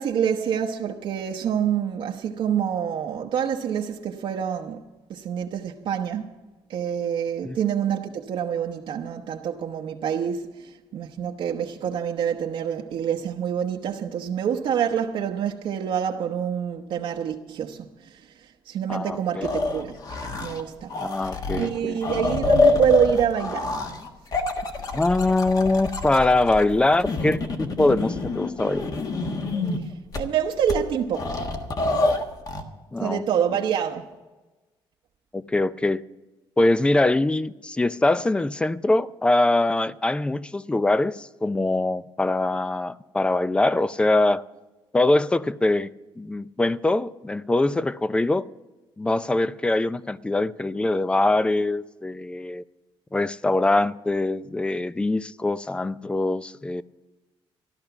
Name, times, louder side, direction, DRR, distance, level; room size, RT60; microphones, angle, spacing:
voice 1, 0.0-4.8 5.1-6.3 6.7-18.2 18.7-20.0 20.4-20.9 21.6-23.8 30.2-31.4 33.0-34.1, right 8 dB, 65° right, 0.9 m, -26 dB
voice 2, 18.9-19.5 21.0-22.0 24.9-28.9 32.9-33.2 35.3-36.0 36.6-44.4 44.9-45.9 46.2-48.4 49.0-52.6 53.1-56.8, left 2 dB, 10° left, 0.4 m, -23 dB
sound 1, 19.4-20.6 20.9-29.8 30.1-30.2 30.7-30.8 31.1-32.6, left 3 dB, 40° left, 1.5 m, -26 dB
14.0 x 12.0 x 5.8 m
cardioid pair, 125°, 9 cm